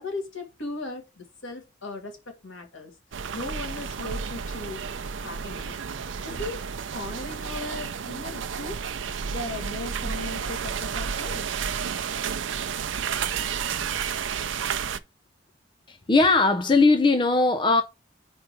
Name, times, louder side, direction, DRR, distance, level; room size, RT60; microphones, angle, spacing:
voice 1, 0.0-2.9 3.3-4.9 5.1-5.8 6.2-8.8 9.3-11.5, left 2 dB, 85° left, 2.3 m, -37 dB
sound 1, 3.1-15.0, right 6 dB, 80° right, 0.5 m, -31 dB
voice 2, 15.9-17.8, left 3 dB, 25° left, 0.5 m, -19 dB
5.0 x 4.3 x 5.9 m
head